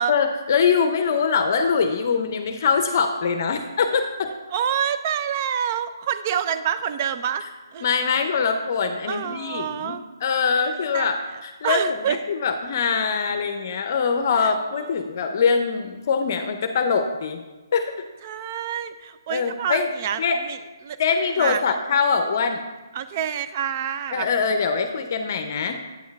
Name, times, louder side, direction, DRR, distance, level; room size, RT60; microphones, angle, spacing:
voice 1, 0.1-4.3 7.8-10.0 10.2-17.4 17.7-17.9 19.3-19.9 20.2-20.4 21.0-22.6 24.1-25.7, left 5 dB, 45° left, 7 dB, 0.6 m, -23 dB
voice 2, 4.5-7.4 7.7-7.9 9.1-10.0 10.9-12.2 14.4-14.5 15.0-15.1 18.2-21.0 21.4-21.8 22.9-24.3, right 9 dB, 35° right, 11 dB, 0.5 m, -27 dB
8.5 x 6.3 x 3.5 m, 1.2 s
hypercardioid pair, 150°, 2 cm